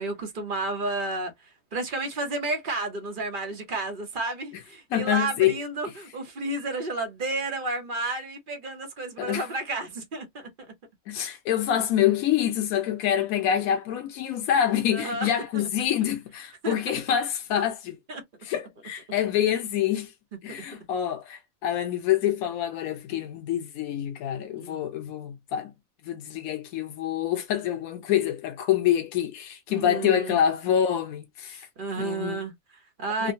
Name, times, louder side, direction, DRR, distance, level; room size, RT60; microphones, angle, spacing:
voice 1, 0.0-1.3 1.7-10.7 14.9-15.3 15.5-15.6 16.6-16.7 18.1-18.2 20.6-20.7 24.5-24.8 29.7-30.4 31.5-33.3, right 2 dB, 45° right, 0.8 m, -32 dB
voice 2, 4.9-5.5 9.2-9.5 11.1-18.0 18.4-20.1 20.4-25.7 26.0-31.7 32.0-32.4 33.2-33.3, left 10 dB, 85° left, 1.0 m, -26 dB
3.5 x 2.1 x 2.6 m
omnidirectional pair, 1.4 m